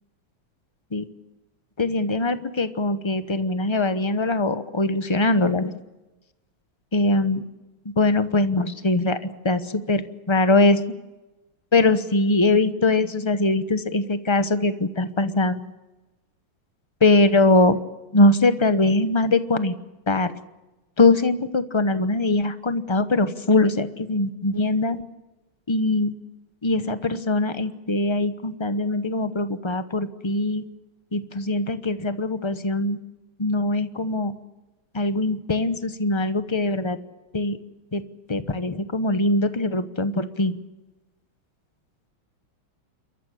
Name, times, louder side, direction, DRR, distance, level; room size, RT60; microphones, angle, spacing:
voice 1, 1.8-5.7 6.9-7.4 8.0-10.8 11.7-15.7 17.0-17.8 18.1-19.7 20.1-20.3 21.0-25.0 25.7-26.1 26.6-30.6 31.1-33.0 33.4-34.3 34.9-37.0 37.3-37.6 37.9-38.0 38.3-40.6, left 2 dB, 30° left, 11 dB, 0.5 m, -22 dB
30.0 x 14.0 x 10.0 m, 1.1 s
omnidirectional pair, 2.2 m